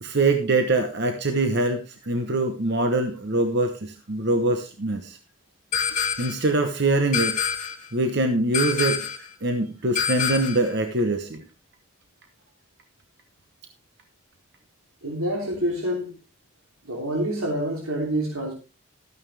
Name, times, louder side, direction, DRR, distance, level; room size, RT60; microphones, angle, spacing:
voice 1, 0.0-5.2 6.2-7.4 7.9-9.0 9.4-11.4, right 2 dB, 50° right, 7 dB, 1.0 m, -23 dB
sound 1, 5.7-6.5 7.1-7.9 8.5-9.3 9.9-10.7, left 7 dB, 40° left, 1.6 m, -26 dB
voice 2, 15.0-16.1 16.8-18.5, right 1 dB, 85° right, -1 dB, 3.0 m, -27 dB
13.5 x 9.2 x 3.3 m, 0.31 s
head